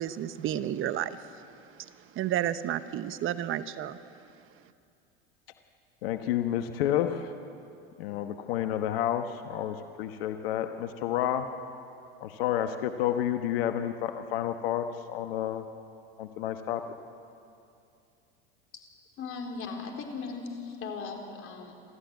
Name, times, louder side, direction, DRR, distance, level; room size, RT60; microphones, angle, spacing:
voice 1, 0.0-4.0, right 11 dB, 45° right, 13 dB, 0.9 m, -32 dB
voice 2, 6.0-7.3 8.0-11.5 12.2-15.6 16.2-16.8, left 11 dB, 75° left, 7 dB, 1.2 m, -30 dB
voice 3, 19.2-21.7, left 4 dB, 45° left, 3 dB, 4.2 m, -38 dB
27.5 x 13.5 x 9.3 m, 2.6 s
hypercardioid pair, 90°, 30 cm